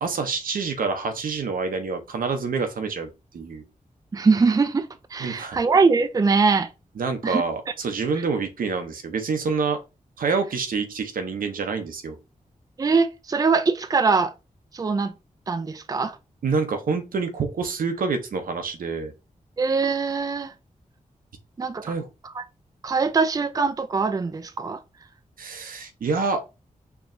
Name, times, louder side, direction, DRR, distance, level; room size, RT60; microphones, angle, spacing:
voice 1, 0.0-3.1 3.3-3.6 5.2-5.6 7.0-9.8 10.2-12.2 16.4-19.1 21.8-22.1 25.4-26.4, right 4 dB, 85° right, 0.7 m, -27 dB
voice 2, 4.1-6.7 7.2-7.4 12.8-14.3 14.7-15.1 15.5-16.2 19.6-20.5 21.6-21.8 22.2-22.4 22.8-24.8, right 4 dB, 25° right, 0.4 m, -22 dB
4.5 x 2.9 x 2.6 m
wide cardioid pair, 80°, 14 cm